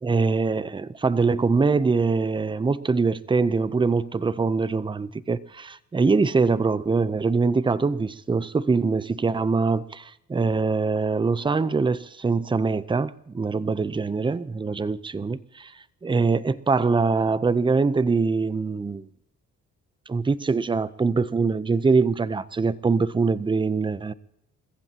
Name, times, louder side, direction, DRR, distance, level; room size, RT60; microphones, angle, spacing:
voice 1, 0.0-15.7 16.0-19.0 20.1-24.1, right 4 dB, 15° right, 0.6 m, -23 dB
29.0 x 15.0 x 2.9 m
cardioid pair, 90°, 30 cm